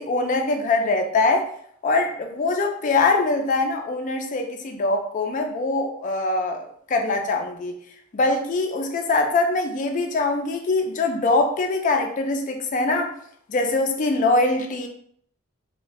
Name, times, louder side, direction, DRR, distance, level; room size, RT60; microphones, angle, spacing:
voice 1, 0.0-1.5 1.8-6.6 6.9-7.8 8.1-13.1 13.5-14.9, left 3 dB, 35° left, 5 dB, 0.3 m, -23 dB
2.6 x 2.1 x 3.0 m, 0.64 s
head